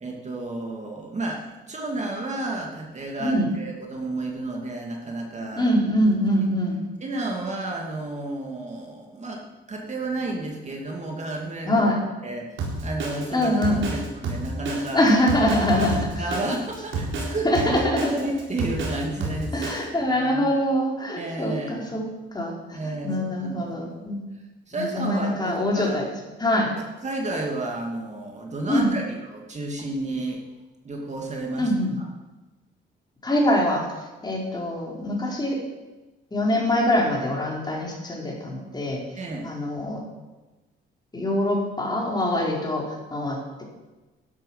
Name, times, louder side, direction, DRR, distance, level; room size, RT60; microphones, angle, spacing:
voice 1, 0.0-5.7 7.0-11.8 12.2-13.5 13.9-15.0 15.8-20.5 21.2-22.0 22.7-24.1 24.7-26.0 27.0-30.4 30.8-31.7 32.0-32.1 39.2-39.4, right 2 dB, 35° right, 0 dB, 2.7 m, -31 dB
voice 2, 5.5-6.9 11.7-12.0 13.3-13.8 14.9-16.1 17.4-18.0 19.5-22.1 22.3-24.2 24.7-26.1 26.4-26.7 28.7-28.9 31.6-31.9 33.2-33.9 34.2-35.6 36.3-39.0 39.4-40.0 41.1-43.6, left 1 dB, 20° left, -2 dB, 4.4 m, -24 dB
Drum kit, 12.6-19.8, right 3 dB, 75° right, 4.4 m, -29 dB
12.5 x 11.0 x 5.8 m, 1.1 s
cardioid pair, 90°, 20 cm